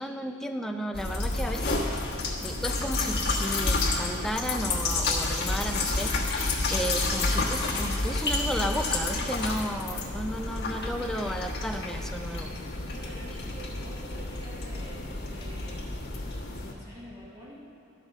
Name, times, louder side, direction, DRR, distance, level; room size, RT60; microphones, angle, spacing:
voice 1, 0.0-2.0 2.4-12.5, equal, ahead, 4 dB, 0.4 m, -34 dB
sound 1, 0.9-16.7, left 2 dB, 55° left, 1.2 m, -30 dB
voice 2, 12.9-15.9 16.4-17.7, right 1 dB, 15° right, -7 dB, 1.0 m, -47 dB
12.0 x 4.9 x 6.4 m, 2.6 s
head